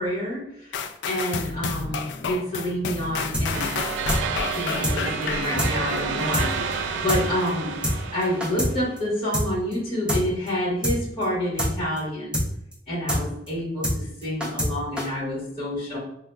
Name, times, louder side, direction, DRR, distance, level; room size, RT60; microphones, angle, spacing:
voice 1, 0.0-3.7 4.1-7.7 8.1-12.4 12.9-16.0, equal, 30° left, -5 dB, 1.3 m, -28 dB
sound 1, 0.7-6.6 7.1-7.2, left 5 dB, 70° left, 0.3 m, -31 dB
sound 2, 3.3-3.5 3.7-3.8 4.1-4.2 4.5-4.6 4.8-5.0 5.2-5.3 5.6-5.7 6.0-6.1 6.3-6.5 6.7-6.8 7.1-7.2 7.5-7.6 7.8-8.0 8.2-8.7 9.0-9.1 9.3-9.5 9.7-9.8 10.1-10.2 10.5-10.6 10.8-11.0 11.2-11.3 11.6-11.7 12.0-12.1 12.3-12.5 12.7-12.8 13.1-13.2 13.5-13.6 13.8-14.0 14.2-14.7 15.0-15.1, equal, 5° right, 0.6 m, -24 dB
sound 3, 3.5-9.0, right 5 dB, 90° right, 0.3 m, -30 dB
4.6 x 2.2 x 2.3 m, 0.78 s
head